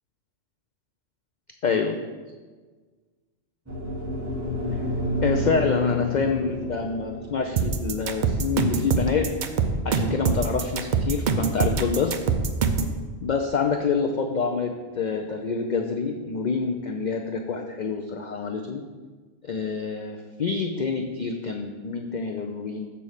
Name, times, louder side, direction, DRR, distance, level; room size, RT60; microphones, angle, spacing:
voice 1, 1.6-2.0 4.7-4.8 5.2-9.3 9.8-12.2 13.2-18.8 19.4-22.9, left 5 dB, 70° left, 4 dB, 0.4 m, -27 dB
sound 1, 3.7-11.9, equal, 15° right, 1.4 m, -32 dB
sound 2, 7.6-12.9, right 5 dB, 60° right, 0.5 m, -24 dB
6.9 x 4.2 x 6.4 m, 1.4 s
omnidirectional pair, 1.3 m